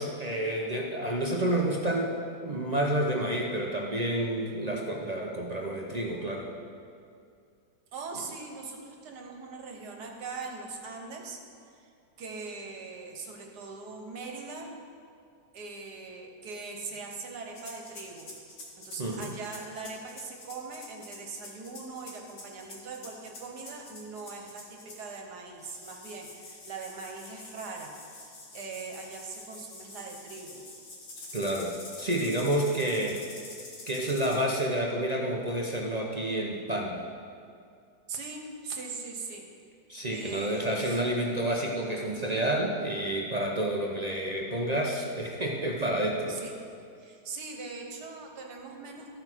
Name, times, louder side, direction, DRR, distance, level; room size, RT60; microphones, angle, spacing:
voice 1, 0.0-2.1 2.4-6.5 19.0-19.3 31.3-33.2 33.9-37.0 39.9-46.4, right 1 dB, 45° right, -1 dB, 0.5 m, -29 dB
voice 2, 7.9-11.4 11.6-11.9 12.2-14.7 15.5-18.3 18.8-30.6 38.1-39.4 40.1-41.0 46.3-46.6 47.0-49.2, right 4 dB, 75° right, 1 dB, 1.6 m, -41 dB
sound 1, 17.5-25.2 25.6-34.4, left 2 dB, 85° left, 2.2 m, -46 dB
14.0 x 6.0 x 4.5 m, 2.4 s
omnidirectional pair, 1.8 m